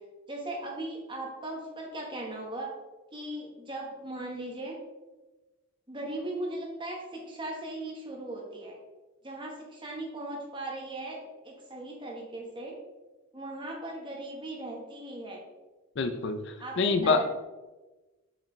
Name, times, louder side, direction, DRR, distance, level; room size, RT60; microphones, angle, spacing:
voice 1, 0.3-2.7 3.1-4.7 5.9-8.8 9.2-12.7 13.3-15.4 16.6-17.3, right 1 dB, 20° right, -1 dB, 1.2 m, -38 dB
voice 2, 16.0-17.2, left 4 dB, 55° left, 8 dB, 0.5 m, -26 dB
7.1 x 4.9 x 3.2 m, 1.2 s
head